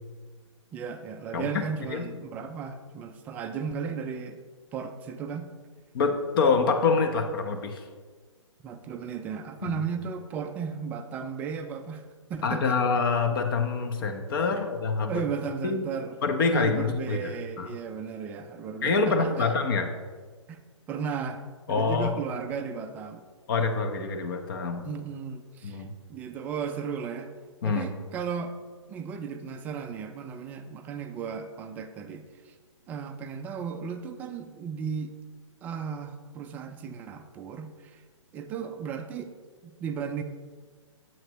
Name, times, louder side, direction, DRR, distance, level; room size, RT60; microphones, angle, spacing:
voice 1, 0.7-4.4 4.7-5.5 8.6-12.0 12.3-12.8 14.5-14.6 15.1-16.2 16.5-19.6 20.5-20.6 20.9-21.4 21.7-23.2 24.8-25.8 26.1-27.3 27.6-28.6 28.9-32.3 32.9-35.1 35.6-38.0 38.3-39.3 39.6-40.2, right 6 dB, 10° right, 7 dB, 0.3 m, -35 dB
voice 2, 5.9-7.8 9.6-9.8 12.4-15.2 15.6-15.8 16.2-17.3 17.6-17.7 18.8-19.9 21.7-22.1 23.5-24.9 25.6-25.9 27.6-27.9, left 4 dB, 45° left, 6 dB, 1.0 m, -26 dB
9.0 x 7.6 x 3.0 m, 1.5 s
figure-of-eight pair, 130°, 16 cm